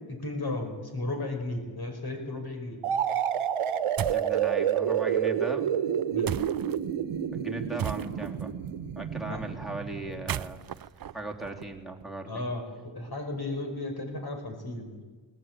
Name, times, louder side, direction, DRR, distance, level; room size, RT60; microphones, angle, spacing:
voice 1, 0.1-2.8 6.1-6.3 9.3-9.4 12.3-15.0, left 2 dB, 50° left, 5 dB, 5.6 m, -34 dB
sound 1, 2.8-10.5, right 9 dB, 90° right, 1.1 m, -29 dB
sound 2, 4.0-4.3 6.2-6.8 7.8-8.4 10.1-12.0, right 10 dB, 45° right, 0.6 m, -35 dB
voice 2, 4.1-5.7 7.3-8.5 8.9-10.7 11.1-12.5, right 2 dB, ahead, 3 dB, 3.5 m, -38 dB
20.0 x 19.5 x 9.2 m, 1.4 s
cardioid pair, 60°, 49 cm